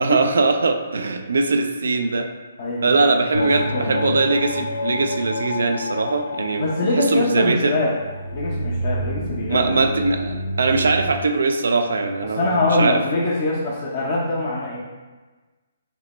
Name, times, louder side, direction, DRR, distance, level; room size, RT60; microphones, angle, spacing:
voice 1, 0.0-2.3 2.8-6.7 7.0-7.7 9.5-13.0, right 3 dB, 80° right, 6 dB, 0.3 m, -21 dB
voice 2, 2.6-3.0 3.3-3.4 3.7-3.9 6.6-7.9 8.3-9.7 12.2-14.8, left 2 dB, 55° left, -5 dB, 0.7 m, -23 dB
sound 1, 3.3-11.2, left 1 dB, 85° left, 0.3 m, -29 dB
5.1 x 2.2 x 3.0 m, 1.2 s
hypercardioid pair, 145°, 0 cm